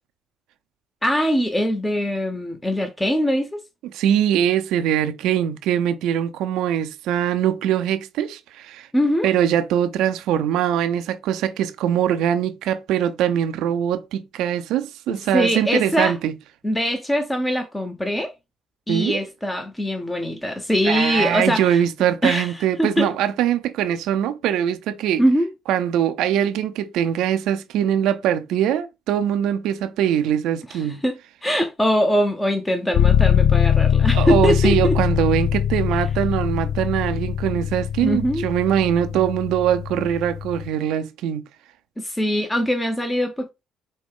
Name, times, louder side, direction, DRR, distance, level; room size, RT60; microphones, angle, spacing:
voice 1, 1.0-3.6 8.9-9.3 15.1-16.1 16.6-18.3 18.9-21.8 22.2-23.1 25.2-25.5 30.7-34.9 38.0-38.5 42.0-43.5, equal, 15° left, 0.8 m, -22 dB
voice 2, 3.9-8.9 9.2-16.3 18.9-19.2 20.8-25.2 25.7-31.0 34.1-41.4, right 10 dB, 70° right, 0.5 m, -22 dB
sound 1, 32.9-40.7, left 9 dB, 60° left, 0.5 m, -21 dB
5.1 x 2.2 x 3.6 m
hypercardioid pair, 50°, 0 cm